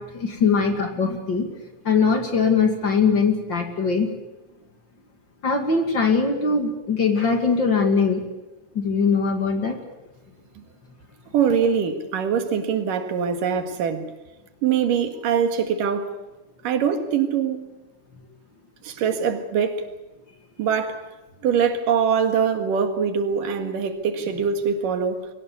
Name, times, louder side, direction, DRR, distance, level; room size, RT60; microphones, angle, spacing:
voice 1, 0.0-1.5 1.8-4.1 5.4-8.2 8.7-9.8, left 5 dB, 40° left, 2.6 m, -21 dB
voice 2, 11.3-14.1 14.6-16.2 16.6-17.6 18.8-19.9 20.6-21.1 21.4-25.3, right 7 dB, 90° right, 3.5 m, -23 dB
23.0 x 18.0 x 8.4 m
omnidirectional pair, 3.7 m